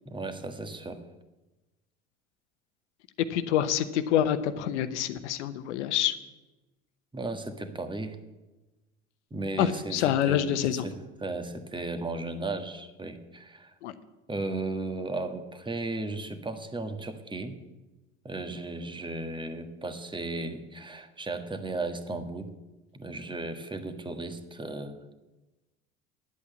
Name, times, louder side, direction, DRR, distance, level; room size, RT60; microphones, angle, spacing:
voice 1, 0.0-1.0 7.1-8.2 9.3-10.9 11.2-13.7 14.3-17.6 18.2-22.5 22.9-25.0, right 2 dB, 15° right, 7 dB, 1.5 m, -35 dB
voice 2, 3.3-6.1 9.6-10.8 13.8-13.9, left 10 dB, 75° left, 11 dB, 1.0 m, -26 dB
11.0 x 8.3 x 8.2 m, 1.1 s
hypercardioid pair, 70°, 35 cm